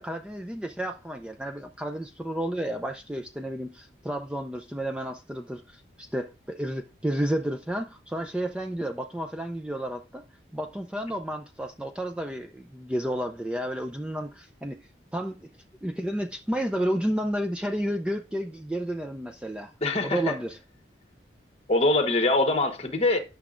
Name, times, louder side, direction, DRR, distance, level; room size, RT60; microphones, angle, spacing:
voice 1, 0.0-10.2 10.5-14.8 15.1-15.5 15.8-19.7 20.0-20.6, right 1 dB, 5° right, 0.4 m, -31 dB
voice 2, 19.8-20.3 21.7-23.2, left 2 dB, 30° left, 1.1 m, -23 dB
10.0 x 5.9 x 2.5 m
head